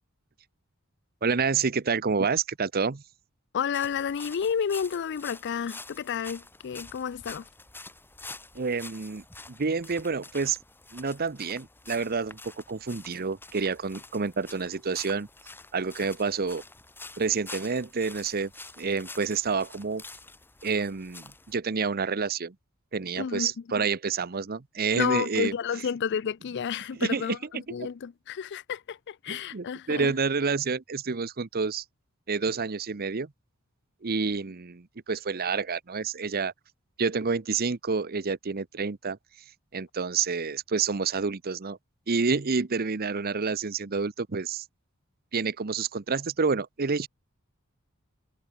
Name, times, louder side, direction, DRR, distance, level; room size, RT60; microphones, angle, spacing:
voice 1, 1.2-3.0 8.5-10.6 10.9-15.3 15.7-16.6 17.2-18.5 18.8-20.0 20.6-22.5 22.9-25.5 27.0-27.9 29.3-31.8 32.3-33.3 34.0-36.5 37.0-39.2 39.7-41.8 42.1-44.6 45.3-47.1, right 5 dB, 45° right, 0.8 m, -28 dB
voice 2, 3.5-7.5 23.2-23.8 24.9-30.1, left 7 dB, 55° left, 0.4 m, -31 dB
sound 1, 3.7-21.6, left 3 dB, 10° left, 1.3 m, -47 dB
head